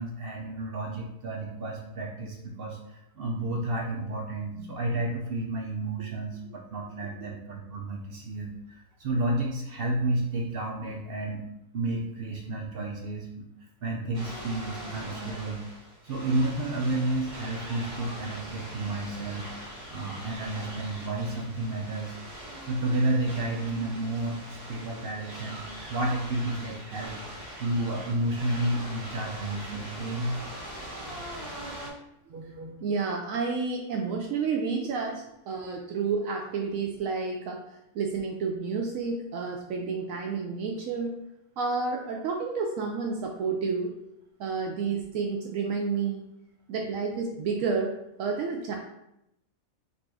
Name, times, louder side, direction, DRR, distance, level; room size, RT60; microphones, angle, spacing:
voice 1, 0.0-11.4 11.7-13.5 13.8-15.6 16.0-19.5 19.9-22.1 22.7-30.4 32.3-32.7, right 2 dB, 60° right, 0 dB, 0.6 m, -31 dB
sound 1, 14.1-31.9, right 1 dB, 30° right, 1.6 m, -42 dB
voice 2, 32.8-37.6 37.9-41.2 41.6-44.0 44.4-46.2 46.7-48.7, right 4 dB, 75° right, 1 dB, 0.9 m, -30 dB
4.0 x 2.6 x 4.6 m, 0.82 s
omnidirectional pair, 1.4 m